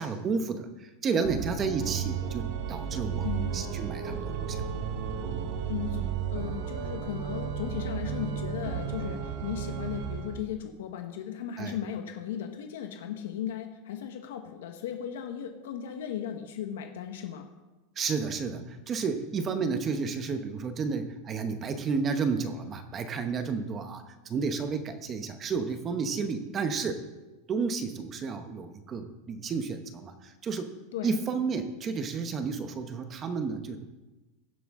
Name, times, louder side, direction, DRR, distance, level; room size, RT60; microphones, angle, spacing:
voice 1, 0.0-3.3 3.5-4.6 11.6-11.8 18.0-27.0 27.5-30.7 31.0-33.8, right 5 dB, 20° right, 8 dB, 0.9 m, -31 dB
Organ, 1.2-10.4, right 7 dB, 50° right, 1.0 m, -33 dB
voice 2, 3.2-3.5 5.7-6.0 6.3-17.5 30.9-31.1, left 9 dB, 85° left, 5 dB, 1.2 m, -36 dB
16.5 x 7.8 x 3.7 m, 1.1 s
supercardioid pair, 165°, 0 cm